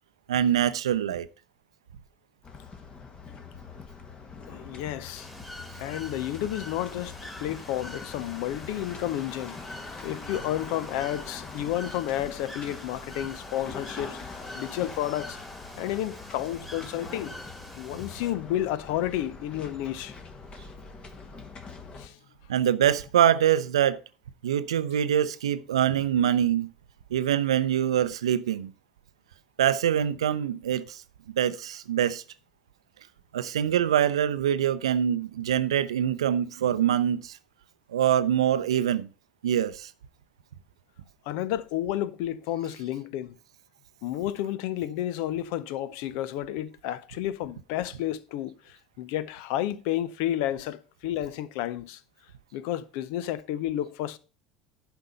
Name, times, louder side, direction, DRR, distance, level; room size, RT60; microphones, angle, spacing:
voice 1, 0.3-1.3 22.5-24.0 24.4-26.7 27.1-28.7 29.6-31.0 31.4-32.2 33.3-37.4 37.9-39.1 39.4-39.9, right 10 dB, 75° right, 0.5 m, -24 dB
sound 1, 2.4-22.1, left 4 dB, 35° left, 1.6 m, -43 dB
voice 2, 4.5-5.3 5.8-9.6 10.0-14.2 14.5-15.4 15.8-17.4 17.8-20.2 21.4-21.5 21.9-22.2 41.3-43.3 44.0-52.0 52.5-54.2, left 12 dB, 60° left, 0.6 m, -31 dB
Bird / Water, 5.2-18.3, left 1 dB, 5° left, 2.2 m, -45 dB
11.0 x 4.6 x 5.3 m
figure-of-eight pair, 70°, 3 cm